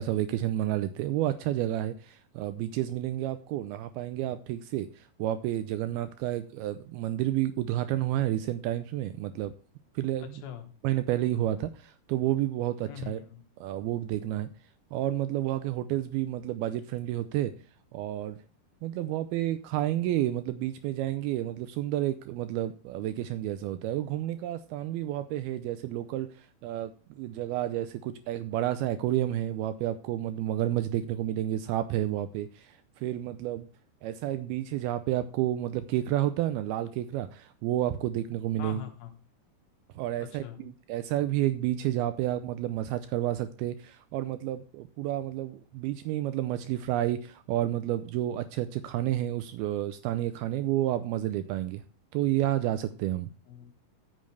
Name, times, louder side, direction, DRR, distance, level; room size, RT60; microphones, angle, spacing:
voice 1, 0.0-9.5 10.0-10.4 10.8-13.2 13.6-14.5 14.9-17.5 17.9-18.4 18.8-33.7 34.0-38.8 40.0-51.8 52.1-53.3, right 13 dB, 80° right, 11 dB, 2.5 m, -30 dB
voice 2, 10.2-10.7 12.9-13.4 38.6-39.1 40.2-40.7 53.5-53.7, left 10 dB, 70° left, 6 dB, 3.1 m, -42 dB
12.0 x 9.2 x 3.4 m, 0.36 s
omnidirectional pair, 4.6 m